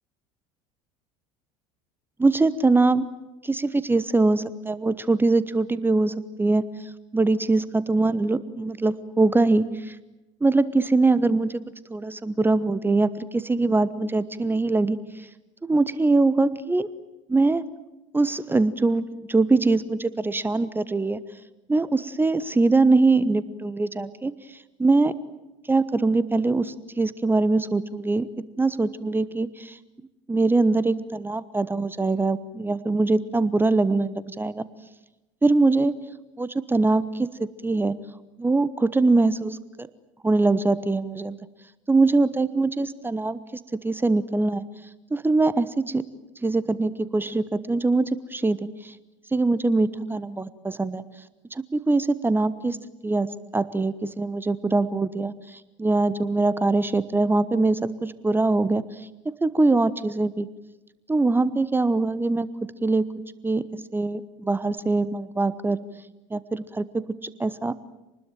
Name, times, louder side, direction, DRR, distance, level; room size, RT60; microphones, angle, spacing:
voice 1, 2.2-3.1 3.4-6.6 7.1-10.0 10.4-11.6 11.9-15.3 15.6-16.9 17.3-17.6 18.1-21.2 21.7-25.1 25.7-28.3 28.6-29.8 30.3-34.6 35.4-35.9 36.4-38.0 38.4-39.9 40.2-41.4 41.9-43.4 43.8-44.6 45.1-46.0 46.4-48.9 49.3-51.0 51.5-52.8 53.0-60.5 61.1-62.5 62.8-63.1 63.4-63.6 63.9-65.8 66.3-67.1 67.4-67.7, right 3 dB, 15° right, 16 dB, 1.1 m, -23 dB
27.5 x 20.5 x 9.1 m, 1.0 s
figure-of-eight pair, 65°, 16 cm